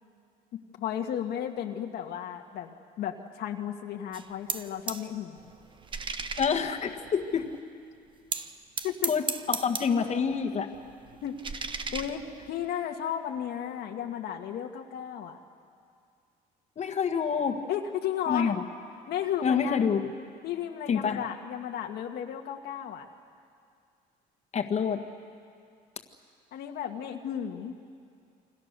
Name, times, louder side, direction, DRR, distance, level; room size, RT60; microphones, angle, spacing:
voice 1, 0.5-5.5 8.8-9.1 11.2-11.4 11.9-15.4 17.7-18.5 19.1-19.9 20.4-23.0 26.5-27.7, left 9 dB, 75° left, 3 dB, 1.7 m, -34 dB
sound 1, 4.1-5.1 5.4-7.6 8.3-10.2 10.5-12.6, right 4 dB, 30° right, 1.1 m, -36 dB
voice 2, 6.4-7.5 9.1-10.7 16.8-17.6 18.3-18.6 19.4-20.1 20.9-21.2 24.5-25.0, left 6 dB, 40° left, 3 dB, 1.8 m, -27 dB
28.5 x 25.0 x 6.8 m, 2.3 s
cardioid pair, 110°, 17 cm